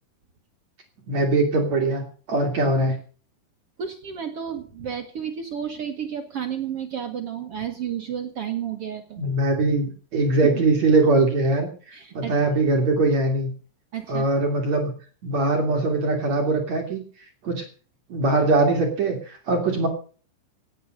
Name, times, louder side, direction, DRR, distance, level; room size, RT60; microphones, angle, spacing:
voice 1, 1.1-3.0 9.2-13.5 14.1-14.9 15.2-17.0 17.4-17.6 18.1-19.9, right 2 dB, 45° right, 3 dB, 3.1 m, -22 dB
voice 2, 3.8-9.2 10.4-10.6 11.9-12.3 13.9-14.3, right 8 dB, 65° right, 6 dB, 1.5 m, -31 dB
17.5 x 9.3 x 6.5 m, 0.41 s
omnidirectional pair, 4.8 m